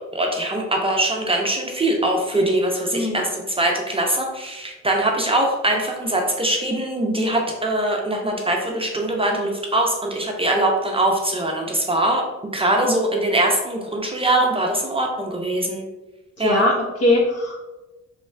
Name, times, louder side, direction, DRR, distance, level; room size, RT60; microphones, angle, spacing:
voice 1, 0.1-12.2 12.5-15.8 16.4-16.6, right 1 dB, 20° right, 0 dB, 0.5 m, -22 dB
voice 2, 16.4-17.6, left 1 dB, 55° left, -2 dB, 1.2 m, -20 dB
3.1 x 2.3 x 4.3 m, 1.1 s
cardioid pair, 90°, 30 cm